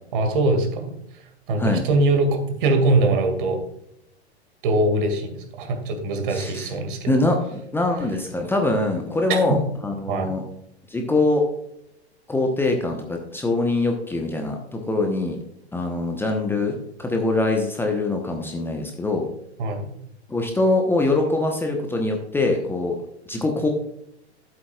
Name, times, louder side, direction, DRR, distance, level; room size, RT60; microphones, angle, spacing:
voice 1, 0.1-0.9 1.5-3.6 4.6-7.1 9.3-9.4 10.1-10.3 19.6-20.0, right 2 dB, 50° right, 5 dB, 2.2 m, -22 dB
voice 2, 6.3-6.7 7.1-10.4 10.9-11.4 12.3-15.4 15.7-19.3 20.3-23.0 23.3-23.7, left 2 dB, 5° left, 2 dB, 1.0 m, -23 dB
11.5 x 8.3 x 2.4 m, 0.75 s
figure-of-eight pair, 100°, 33 cm